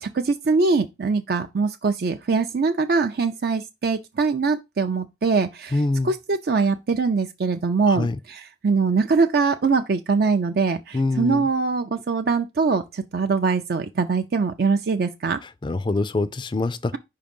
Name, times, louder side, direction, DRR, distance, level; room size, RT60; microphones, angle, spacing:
voice 1, 0.0-5.8 6.0-15.4, right 4 dB, 55° right, 0.5 m, -22 dB
voice 2, 5.7-6.1 7.9-8.2 10.9-11.5 15.6-17.0, left 2 dB, 25° left, 0.4 m, -24 dB
5.1 x 3.8 x 5.3 m
head